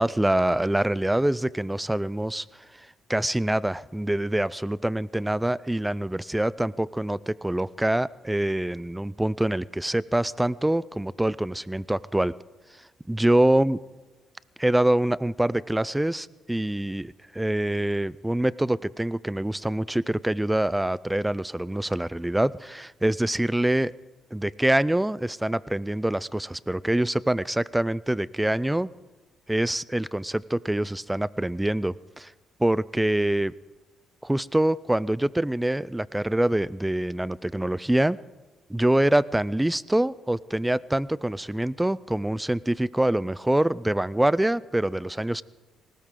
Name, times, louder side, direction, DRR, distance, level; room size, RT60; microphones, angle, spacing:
voice 1, 0.0-2.4 3.1-12.3 13.1-13.8 14.6-23.9 24.3-28.9 29.5-32.3 32.6-33.5 34.2-38.2 38.7-45.4, right 1 dB, 10° right, 20 dB, 0.4 m, -25 dB
20.0 x 18.0 x 3.8 m, 1.2 s
cardioid pair, 90°, 0 cm